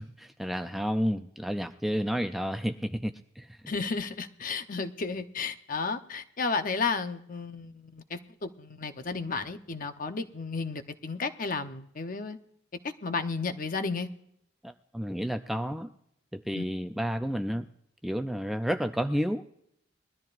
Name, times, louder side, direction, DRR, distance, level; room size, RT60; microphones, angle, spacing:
voice 1, 0.0-3.7 14.6-15.9 16.3-17.7 18.0-19.4, equal, ahead, 7 dB, 0.4 m, -31 dB
voice 2, 3.7-12.4 12.8-14.1 16.5-16.6, left 4 dB, 45° left, 9 dB, 0.8 m, -33 dB
21.5 x 13.0 x 2.5 m, 0.73 s
head